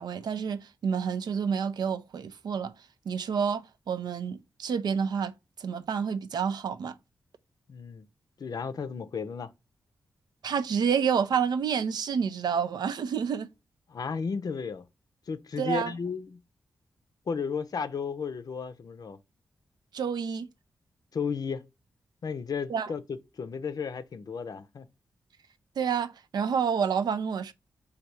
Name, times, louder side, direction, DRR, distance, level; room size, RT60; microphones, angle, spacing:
voice 1, 0.0-2.7 3.1-5.3 5.6-6.9 10.4-13.5 15.6-15.9 19.9-20.5 22.7-22.9 25.8-27.5, right 7 dB, 70° right, 0.4 m, -29 dB
voice 2, 7.7-8.1 8.4-9.5 13.9-14.9 15.3-16.4 17.3-19.2 21.1-21.6 22.2-24.9, left 5 dB, 60° left, 0.5 m, -34 dB
3.3 x 2.3 x 4.2 m
supercardioid pair, 45°, 7 cm